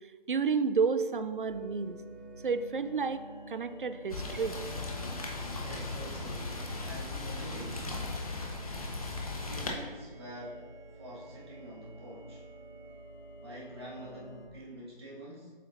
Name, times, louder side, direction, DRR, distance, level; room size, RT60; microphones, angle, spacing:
voice 1, 0.3-2.0 2.4-3.2 3.5-4.6, right 5 dB, 60° right, 12 dB, 0.5 m, -30 dB
sound 1, 1.5-14.5, right 2 dB, 55° left, 1.4 m, -50 dB
Rain, 4.1-9.7, left 3 dB, 40° left, 0.9 m, -37 dB
voice 2, 5.5-6.5 6.8-7.9 9.4-10.7 10.9-12.4 13.4-15.5, equal, 25° right, -6 dB, 1.6 m, -46 dB
7.6 x 5.8 x 2.6 m, 1.5 s
figure-of-eight pair, 155°, 29 cm